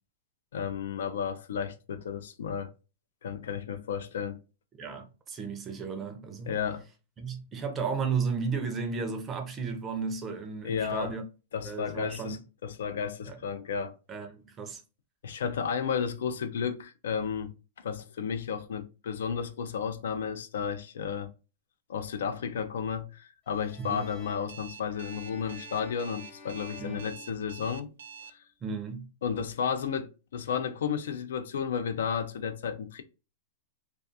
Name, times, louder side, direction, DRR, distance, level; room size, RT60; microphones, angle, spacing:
voice 1, 0.5-2.7 3.2-4.4 6.5-6.8 10.6-11.2 11.5-13.9 15.2-21.3 21.9-27.9 28.3-28.4 29.2-33.0, left 7 dB, 85° left, 0.4 m, -33 dB
voice 2, 4.8-6.5 7.2-11.2 11.6-12.4 13.3-13.4 14.1-14.8 23.8-24.0 26.8-27.0 28.6-29.1, right 5 dB, 20° right, 0.4 m, -34 dB
sound 1, 23.5-28.1, left 3 dB, 30° left, 0.8 m, -51 dB
Alarm, 24.5-28.3, right 7 dB, 85° right, 0.3 m, -46 dB
2.3 x 2.3 x 2.6 m
supercardioid pair, 160°, 0 cm